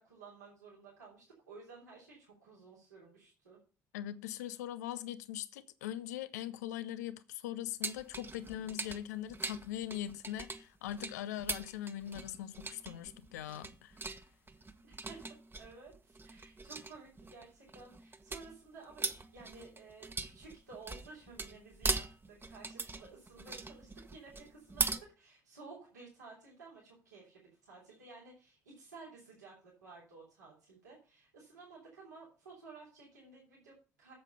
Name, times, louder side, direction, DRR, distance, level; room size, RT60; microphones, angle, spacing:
voice 1, 0.0-3.6 14.8-15.3 15.6-34.1, right 4 dB, 90° right, 3.3 m, -54 dB
voice 2, 3.9-14.0, left 12 dB, 80° left, 0.6 m, -41 dB
sound 1, 7.8-25.0, right 3 dB, 25° right, 1.2 m, -41 dB
8.7 x 7.4 x 5.5 m
figure-of-eight pair, 45°, 9 cm